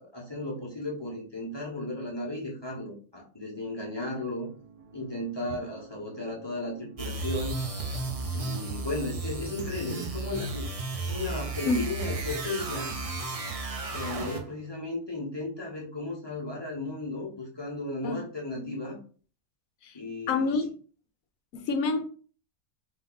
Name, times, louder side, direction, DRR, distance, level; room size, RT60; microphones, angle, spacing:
voice 1, 0.0-4.5 4.9-7.6 8.3-10.7 11.1-12.9 13.9-19.0 19.9-20.5, left 2 dB, 20° left, -3 dB, 1.1 m, -35 dB
sound 1, 4.4-10.2, right 4 dB, 75° right, 2.1 m, -52 dB
sound 2, 7.0-14.6, right 3 dB, 55° right, 0.4 m, -34 dB
voice 2, 20.3-20.7 21.5-22.0, left 4 dB, 70° left, 8 dB, 1.0 m, -28 dB
4.2 x 2.7 x 4.0 m, 0.41 s
omnidirectional pair, 1.6 m